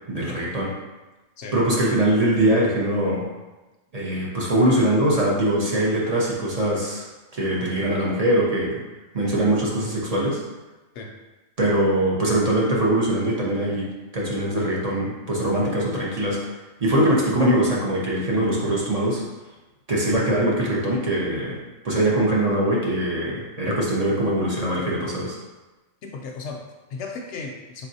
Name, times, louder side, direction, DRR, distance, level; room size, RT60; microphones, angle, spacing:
voice 1, 0.1-0.7 1.5-3.2 3.9-7.0 7.3-8.8 9.1-10.4 11.6-16.4 16.8-19.2 19.9-21.6 21.8-25.4, right 1 dB, 35° right, -4 dB, 0.7 m, -22 dB
voice 2, 26.0-27.9, left 4 dB, 70° left, 2 dB, 0.8 m, -35 dB
4.2 x 3.6 x 2.7 m, 1.1 s
omnidirectional pair, 1.4 m